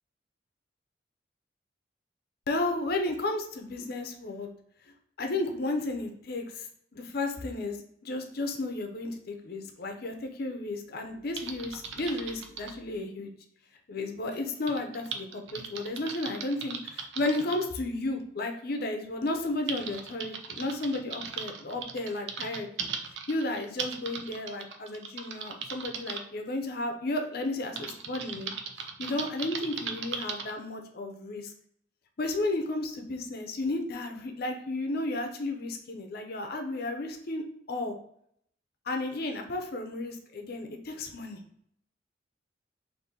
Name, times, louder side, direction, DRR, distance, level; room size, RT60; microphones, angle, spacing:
voice 1, 2.5-4.5 5.2-6.7 6.9-13.3 13.9-22.9 23.3-28.5 29.0-31.5 32.2-38.0 38.9-41.4, left 2 dB, 55° left, 4 dB, 0.6 m, -33 dB
Typing, 11.4-12.8 14.7-17.6 18.7-18.8 19.3-26.2 27.8-30.5, right 6 dB, 70° right, 0.5 m, -38 dB
4.0 x 2.6 x 3.7 m, 0.68 s
head